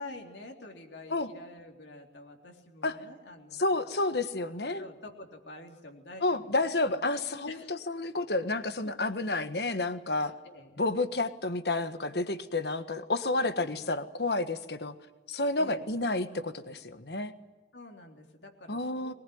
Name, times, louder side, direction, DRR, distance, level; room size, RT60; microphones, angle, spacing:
voice 1, 0.0-3.7 4.8-6.4 6.8-7.1 7.5-7.7 8.8-8.9 10.1-10.8 13.7-13.9 15.6-15.9 17.7-19.1, left 2 dB, 85° left, 2 dB, 3.5 m, -47 dB
voice 2, 3.6-4.8 6.2-10.4 10.8-14.9 15.3-17.3 18.7-19.1, left 2 dB, 65° left, 10 dB, 1.5 m, -30 dB
22.0 x 20.5 x 9.5 m, 1.2 s
head